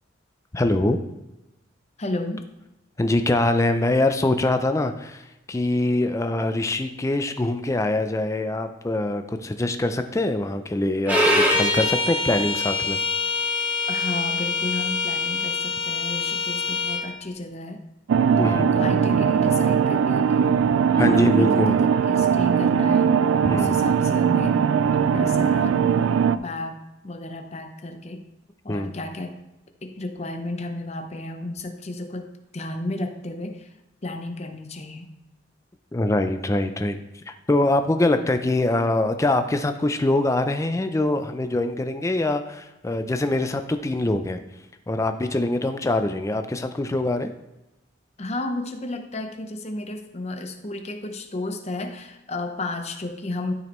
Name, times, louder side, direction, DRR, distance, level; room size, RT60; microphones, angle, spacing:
voice 1, 0.5-1.0 3.0-5.2 5.5-13.0 18.4-18.7 21.0-21.8 23.4-23.8 28.7-28.9 35.9-37.0 37.3-44.4 44.9-47.3, left 2 dB, 15° left, 8 dB, 0.4 m, -23 dB
voice 2, 2.0-2.4 13.9-17.8 18.4-20.5 20.9-23.1 23.5-24.5 24.9-25.8 26.3-28.2 28.6-29.4 29.8-32.3 32.5-33.7 34.0-35.1 48.2-53.5, left 2 dB, 35° left, 6 dB, 0.7 m, -33 dB
Bowed string instrument, 11.1-17.0, left 2 dB, 10° right, 1.3 m, -24 dB
sound 1, 18.1-26.4, right 7 dB, 80° right, 0.3 m, -20 dB
12.5 x 5.1 x 3.0 m, 0.98 s
head